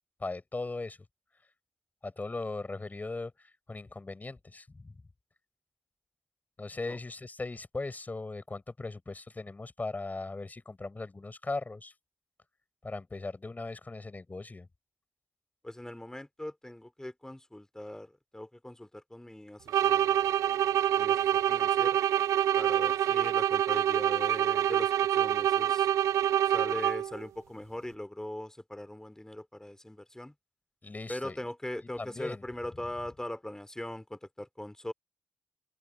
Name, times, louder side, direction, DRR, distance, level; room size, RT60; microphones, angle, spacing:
voice 1, 0.2-1.0 2.0-5.0 6.6-11.9 12.8-14.7 30.8-31.4 32.0-32.4, left 3 dB, 35° left, 6.1 m, -38 dB
voice 2, 15.6-20.3 20.9-22.0 22.5-25.9 26.4-30.3 31.1-34.9, left 1 dB, 10° left, 3.0 m, -41 dB
sound 1, 19.7-27.2, right 11 dB, 85° right, 0.4 m, -26 dB
supercardioid pair, 45°, 5 cm